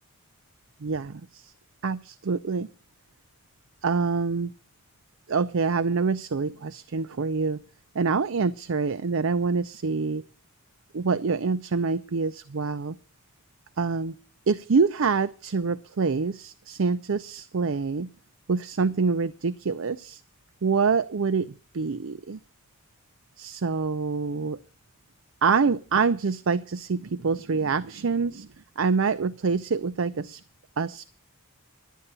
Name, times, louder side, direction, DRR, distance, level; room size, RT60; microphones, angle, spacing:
voice 1, 0.8-1.5 1.8-2.7 3.8-4.5 5.3-7.6 7.9-10.2 10.9-13.0 13.8-14.2 14.5-18.1 18.5-20.2 20.6-22.4 23.4-24.6 25.4-28.5 28.8-30.4 30.8-31.0, right 4 dB, 65° right, 14 dB, 0.5 m, -26 dB
11.0 x 9.9 x 6.8 m, 0.37 s
head